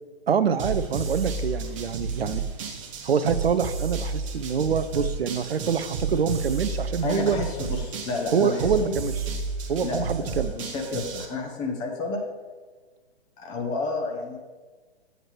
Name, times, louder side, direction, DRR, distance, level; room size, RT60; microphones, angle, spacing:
voice 1, 0.3-2.5 3.0-7.4 8.3-9.1 9.7-10.6, right 6 dB, 65° right, 12 dB, 0.5 m, -25 dB
sound 1, 0.6-11.3, right 4 dB, 30° right, 0.7 m, -31 dB
voice 2, 7.0-8.9 9.8-12.2 13.4-14.4, left 3 dB, 15° left, 1 dB, 0.6 m, -31 dB
7.9 x 7.5 x 3.2 m, 1.3 s
figure-of-eight pair, 125°, 32 cm